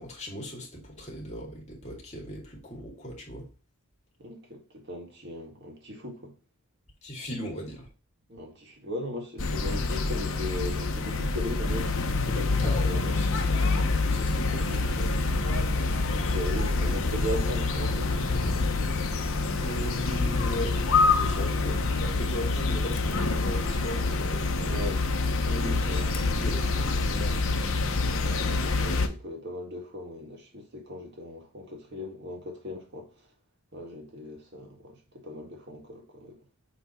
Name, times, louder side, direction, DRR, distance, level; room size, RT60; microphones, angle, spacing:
voice 1, 0.0-3.5 7.0-7.9 12.6-12.9 13.2-15.1 19.6-20.7 21.1-24.8 25.4-27.5, equal, 30° left, 2.2 m, -38 dB
voice 2, 4.2-6.3 8.3-13.2 14.6-14.8 15.7-18.1 19.8-20.0 21.6-21.8 24.6-25.0 25.5-26.2 28.2-33.1 33.7-36.4, left 1 dB, 50° right, 1.8 m, -38 dB
sound 1, 9.4-29.1, left 3 dB, 65° left, 0.9 m, -26 dB
6.6 x 3.4 x 4.3 m
head